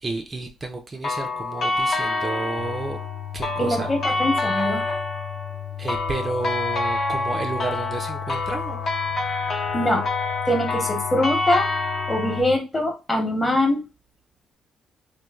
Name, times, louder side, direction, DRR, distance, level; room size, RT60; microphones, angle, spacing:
voice 1, 0.0-3.0 3.3-3.9 5.8-8.8, right 3 dB, 30° right, 3 dB, 0.4 m, -31 dB
sound 1, 1.0-12.4, left 3 dB, 60° left, 0.7 m, -27 dB
sound 2, 2.6-12.6, left 12 dB, 85° left, 0.4 m, -36 dB
voice 2, 3.6-4.8 9.7-10.1 10.5-11.7 12.1-13.8, left 1 dB, 20° left, 3 dB, 0.9 m, -23 dB
3.0 x 2.1 x 2.3 m, 0.28 s
cardioid pair, 90°, 0 cm